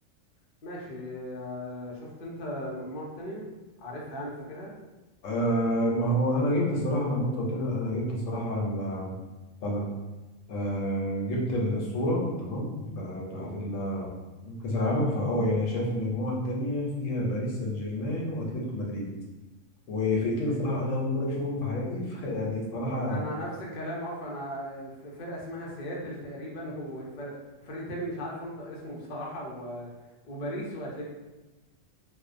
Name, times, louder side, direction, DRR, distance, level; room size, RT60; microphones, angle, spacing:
voice 1, 0.6-3.4 3.8-4.7 13.3-13.5 20.5-20.6 23.1-27.3 27.6-29.9 30.2-31.0, equal, 55° left, -4 dB, 0.6 m, -37 dB
voice 2, 5.2-9.2 9.6-9.9 10.5-14.1 14.4-19.1 19.9-23.2, left 1 dB, 75° left, -3 dB, 1.0 m, -29 dB
2.6 x 2.1 x 2.4 m, 1.1 s
omnidirectional pair, 1.4 m